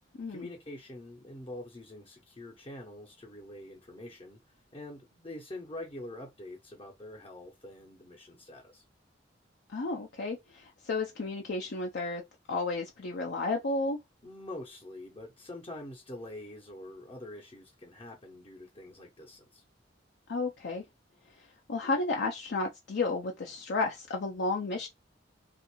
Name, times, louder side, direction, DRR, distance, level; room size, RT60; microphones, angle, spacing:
voice 1, 0.3-4.4 4.7-8.8 14.2-19.6, left 1 dB, 30° left, 0.7 m, -45 dB
voice 2, 9.7-12.2 12.5-14.0 20.3-20.8 21.4-24.9, left 3 dB, 65° left, 0.5 m, -32 dB
3.5 x 2.5 x 2.9 m
head